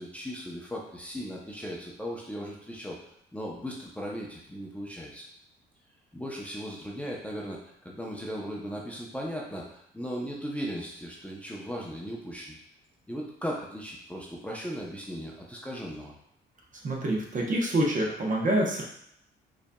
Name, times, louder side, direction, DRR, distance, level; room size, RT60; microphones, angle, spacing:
voice 1, 0.0-3.0 3.3-5.3 6.1-12.6 13.1-16.1, equal, 5° left, -2 dB, 0.7 m, -37 dB
voice 2, 16.8-18.8, right 1 dB, 40° right, -1 dB, 0.9 m, -26 dB
5.1 x 2.6 x 2.2 m, 0.73 s
cardioid pair, 90°, 20 cm